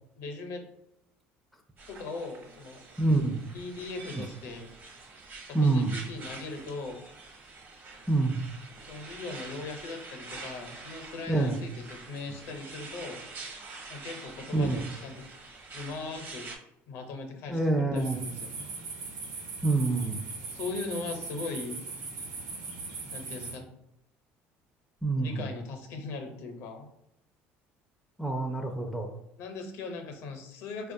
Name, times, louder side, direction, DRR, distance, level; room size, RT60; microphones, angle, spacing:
voice 1, 0.2-0.7 1.9-2.8 3.5-4.7 5.4-7.0 8.9-13.2 13.9-15.2 15.7-16.5 16.9-18.7 20.5-22.0 23.1-23.6 25.1-26.9 29.4-30.9, left 3 dB, 70° left, 4 dB, 0.7 m, -39 dB
sound 1, 1.8-16.6, right 3 dB, 40° right, 0.8 m, -46 dB
voice 2, 3.0-3.4 5.5-5.9 8.1-8.4 11.3-11.6 14.5-14.8 17.5-18.2 19.6-20.2 25.0-25.5 28.2-29.1, right 2 dB, 5° right, 2 dB, 0.4 m, -26 dB
sound 2, 18.0-23.6, right 4 dB, 90° right, 1.0 m, -40 dB
4.2 x 2.3 x 2.6 m, 0.80 s
supercardioid pair, 100°, 5 cm